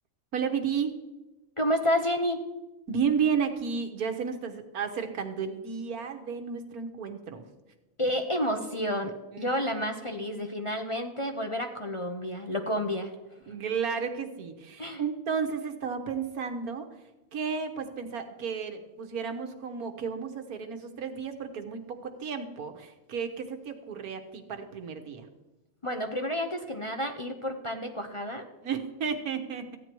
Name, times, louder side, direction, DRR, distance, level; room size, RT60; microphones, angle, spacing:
voice 1, 0.3-0.9 2.9-7.5 9.3-9.5 13.5-16.9 17.3-25.3 28.6-29.8, right 6 dB, 90° right, 7 dB, 1.7 m, -32 dB
voice 2, 1.6-2.4 8.0-13.1 14.8-15.0 25.8-28.5, equal, 25° left, 3 dB, 0.7 m, -30 dB
15.0 x 9.6 x 4.5 m, 1.1 s
omnidirectional pair, 1.5 m